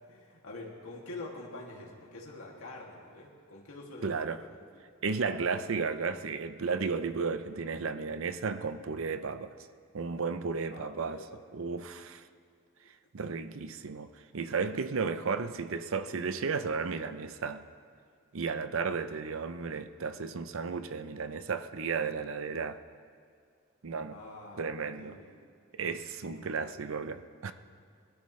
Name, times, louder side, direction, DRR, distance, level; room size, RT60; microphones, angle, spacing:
voice 1, 0.0-4.6 10.7-11.4 12.8-12.9 24.1-25.4 26.2-26.7, left 2 dB, 85° left, -2 dB, 2.5 m, -46 dB
voice 2, 4.0-4.4 5.0-9.5 9.9-11.2 11.5-12.3 13.1-17.7 18.3-22.8 23.8-24.2 24.6-25.2 25.7-27.5, right 5 dB, 70° right, 11 dB, 0.6 m, -34 dB
22.0 x 12.5 x 3.2 m, 2.3 s
head